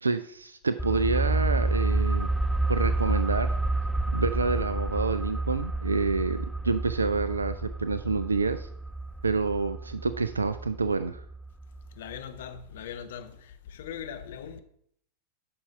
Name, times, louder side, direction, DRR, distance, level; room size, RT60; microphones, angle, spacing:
voice 1, 0.0-2.3 2.7-3.6 4.1-8.7 9.2-11.2, right 4 dB, 75° right, 0.4 m, -28 dB
sound 1, 0.8-12.2 12.4-12.5, right 2 dB, 5° right, 0.4 m, -29 dB
voice 2, 11.9-14.6, left 8 dB, 55° left, 0.9 m, -40 dB
8.7 x 5.9 x 5.4 m
figure-of-eight pair, 90°, 0 cm